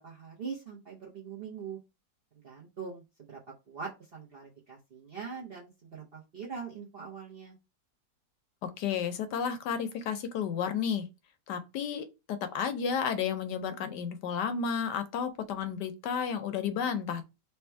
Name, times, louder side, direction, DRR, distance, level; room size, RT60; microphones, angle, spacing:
voice 1, 0.0-1.8 2.4-3.0 3.3-3.4 3.7-7.6, right 5 dB, 45° right, 0.8 m, -42 dB
voice 2, 8.6-11.1 11.5-17.3, left 7 dB, 75° left, 1.2 m, -32 dB
3.4 x 2.9 x 4.5 m
omnidirectional pair, 1.9 m